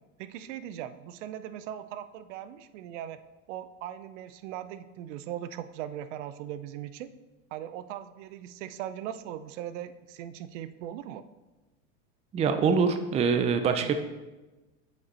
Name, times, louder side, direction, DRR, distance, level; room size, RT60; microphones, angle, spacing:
voice 1, 0.2-3.2 3.5-7.1 7.5-11.2 13.8-13.9, right 11 dB, 70° right, 12 dB, 0.6 m, -39 dB
voice 2, 12.3-13.9, right 5 dB, 15° right, 8 dB, 0.4 m, -24 dB
7.6 x 4.9 x 4.3 m, 1.1 s
supercardioid pair, 115°, 39 cm